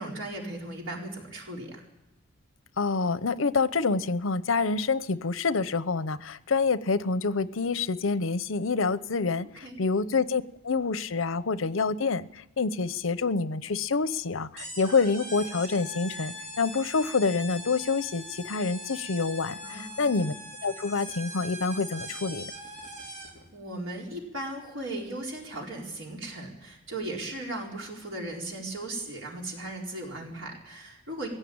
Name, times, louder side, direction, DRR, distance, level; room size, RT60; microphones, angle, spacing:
voice 1, 0.0-1.8 9.6-9.8 19.6-20.1 23.5-31.3, right 1 dB, 85° right, -1 dB, 4.5 m, -37 dB
voice 2, 2.8-20.3 20.6-22.5, left 4 dB, 85° left, 15 dB, 0.7 m, -27 dB
sound 1, 14.6-23.5, equal, 40° right, 4.2 m, -41 dB
20.5 x 16.5 x 8.8 m, 0.92 s
head